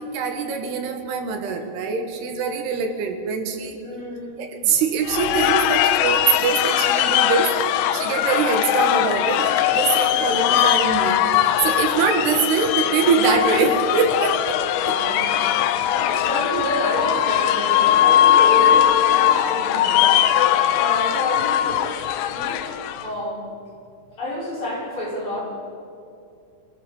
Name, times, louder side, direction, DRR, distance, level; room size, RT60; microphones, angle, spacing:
voice 1, 0.0-3.8 4.4-7.5 7.9-14.6 14.9-15.0, right 5 dB, 75° right, 5 dB, 3.6 m, -23 dB
voice 2, 3.8-4.4 14.9-20.1 20.7-21.9 22.3-22.6 23.0-23.4 24.2-25.4, left 1 dB, 30° left, -5 dB, 5.7 m, -28 dB
sound 1, 5.1-23.1, left 11 dB, 80° left, 2.5 m, -20 dB
25.0 x 15.5 x 7.2 m, 2.6 s
omnidirectional pair, 4.8 m